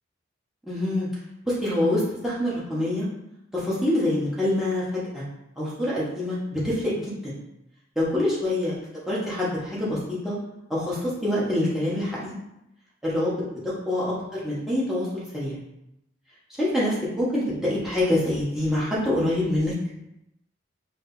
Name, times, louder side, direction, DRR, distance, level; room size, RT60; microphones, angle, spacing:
voice 1, 0.7-1.1 1.5-3.0 3.5-5.2 5.6-7.3 7.9-8.8 9.1-10.4 10.7-12.3 13.0-13.3 13.8-15.5 16.6-19.7, left 1 dB, ahead, -9 dB, 1.2 m, -25 dB
5.0 x 2.8 x 2.7 m, 0.84 s
head